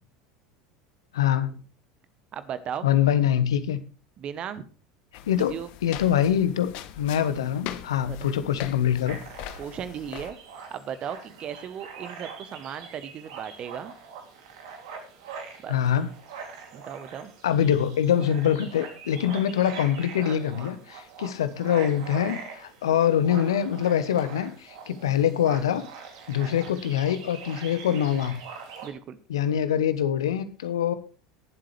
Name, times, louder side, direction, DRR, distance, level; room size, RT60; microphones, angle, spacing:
voice 1, 1.1-1.6 2.8-3.8 5.3-5.5 5.8-6.7 7.0-9.2 15.7-16.1 17.4-25.8 26.3-28.4 29.3-30.9, left 9 dB, 75° left, 13 dB, 1.1 m, -24 dB
voice 2, 2.3-2.9 4.2-4.6 5.5-5.7 8.1-8.3 9.6-10.4 10.7-13.9 15.6-15.8 16.7-17.3 28.8-29.2, right 8 dB, 40° right, 13 dB, 1.1 m, -36 dB
sound 1, 5.1-10.3, left 12 dB, 55° left, 1.1 m, -41 dB
sound 2, 9.0-28.9, right 5 dB, 65° right, 2.8 m, -43 dB
19.0 x 7.7 x 3.3 m, 0.38 s
hypercardioid pair, 80°, 3 cm